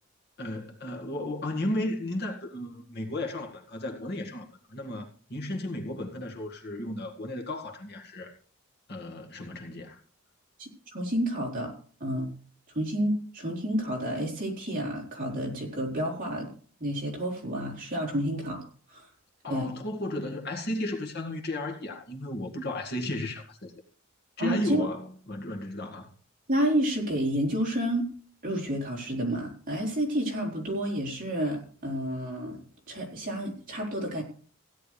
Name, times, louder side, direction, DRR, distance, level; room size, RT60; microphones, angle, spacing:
voice 1, 0.4-8.3 8.9-10.0 19.4-23.7 24.4-26.1, left 1 dB, 50° left, 1.9 m, -34 dB
voice 2, 10.6-11.7 12.0-12.3 12.7-16.5 16.8-18.6 18.9-19.1 19.5-19.7 24.4-24.8 26.5-28.1 28.4-32.6 32.9-34.2, equal, 40° right, 4.2 m, -30 dB
16.5 x 10.5 x 3.4 m
head